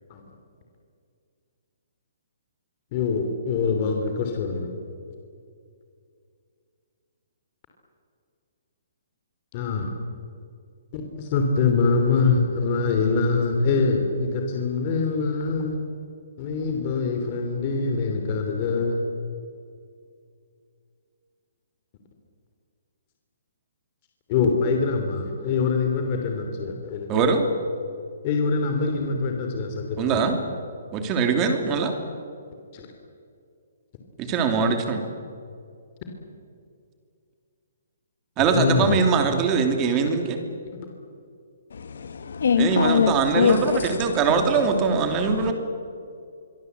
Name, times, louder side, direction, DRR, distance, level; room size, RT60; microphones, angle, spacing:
voice 1, 2.9-4.7 9.5-9.9 10.9-15.8 16.4-19.0 24.3-27.2 28.2-30.3 32.7-32.9 38.4-39.0, left 4 dB, 30° left, 3.1 m, -24 dB
voice 2, 27.1-27.5 30.0-30.4 30.9-31.9 34.2-35.0 38.4-40.4 42.6-45.5, right 5 dB, 20° right, 2.9 m, -22 dB
voice 3, 41.7-44.7 45.0-45.5, left 6 dB, 70° left, 1.6 m, -24 dB
26.5 x 23.5 x 8.2 m
hypercardioid pair, 170°, 0 cm